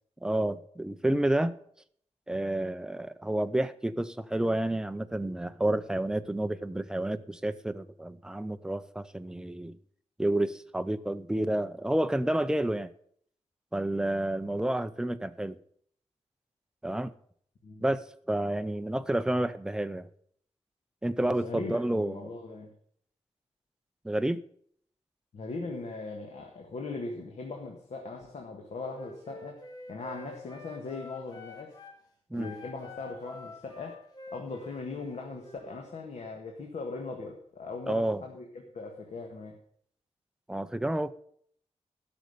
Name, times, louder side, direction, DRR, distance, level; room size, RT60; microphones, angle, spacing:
voice 1, 0.2-1.6 2.3-9.8 10.2-12.9 13.7-15.6 16.8-17.1 17.8-20.1 21.0-22.3 24.0-24.4 32.3-32.5 37.9-38.2 40.5-41.1, right 1 dB, 5° right, 12 dB, 0.5 m, -30 dB
voice 2, 21.2-22.7 25.3-29.6 29.9-31.8 32.3-34.0 34.3-39.6, left 3 dB, 75° left, 2 dB, 1.6 m, -39 dB
Wind instrument woodwind instrument, 28.9-32.0 32.3-35.8, left 2 dB, 35° left, 2.6 m, -48 dB
12.0 x 6.4 x 6.7 m, 0.63 s
wide cardioid pair, 145°, 12 cm